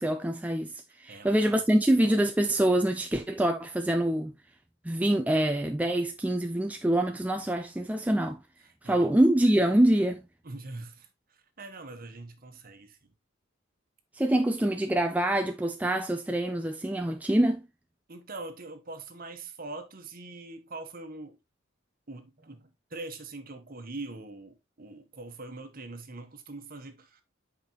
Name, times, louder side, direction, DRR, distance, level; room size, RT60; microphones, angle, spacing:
voice 1, 0.0-0.7 1.0-4.3 4.8-8.4 8.8-10.2 14.2-17.6, right 1 dB, 5° right, 0.4 m, -25 dB
voice 2, 0.9-1.4 8.6-9.1 9.4-9.5 10.4-13.1 18.1-21.4 22.1-27.2, right 2 dB, 45° right, 1.2 m, -43 dB
8.0 x 5.1 x 2.9 m
head